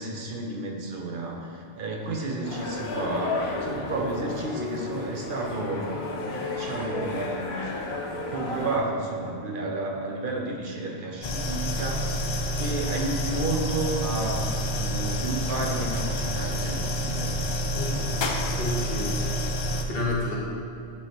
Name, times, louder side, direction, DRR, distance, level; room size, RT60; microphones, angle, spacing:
voice 1, 0.0-12.3 12.6-17.3, right 2 dB, 60° right, 0 dB, 0.8 m, -32 dB
sound 1, 2.0-10.6 11.5-11.9, left 2 dB, 15° right, 0.5 m, -44 dB
sound 2, 2.4-8.8, left 2 dB, 80° left, 1.1 m, -33 dB
sound 3, 11.2-19.8, equal, 50° left, 0.3 m, -28 dB
voice 2, 17.7-18.1 18.6-19.3 19.6-20.4, left 1 dB, 65° left, -5 dB, 1.5 m, -30 dB
8.4 x 4.8 x 2.9 m, 2.7 s
omnidirectional pair, 1.1 m